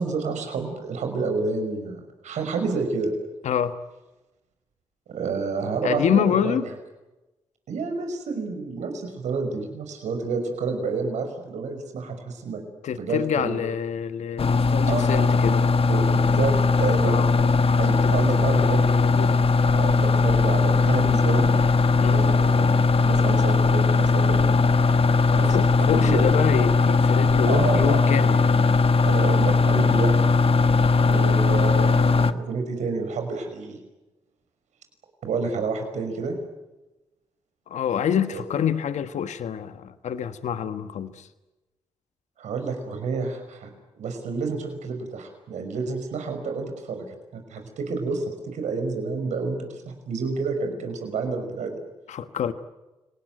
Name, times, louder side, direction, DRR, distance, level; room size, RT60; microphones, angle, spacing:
voice 1, 0.0-3.1 5.1-6.6 7.7-12.6 12.9-13.6 14.8-15.3 15.9-17.2 17.8-18.9 19.7-21.5 22.1-22.7 23.0-24.6 25.3-26.3 27.5-28.0 29.0-30.1 31.0-33.8 35.2-36.3 38.3-38.4 42.4-43.7 44.0-47.0 47.3-51.8, right 4 dB, 80° right, 6 dB, 5.6 m, -29 dB
voice 2, 3.4-3.7 5.8-6.6 12.8-15.6 17.0-17.5 18.0-19.4 22.0-22.2 25.3-28.6 37.7-41.3 52.1-52.5, left 8 dB, 75° left, 11 dB, 1.4 m, -27 dB
sound 1, 14.4-32.3, left 4 dB, 50° left, 1.3 m, -19 dB
29.0 x 19.0 x 9.2 m, 1.0 s
supercardioid pair, 45°, 12 cm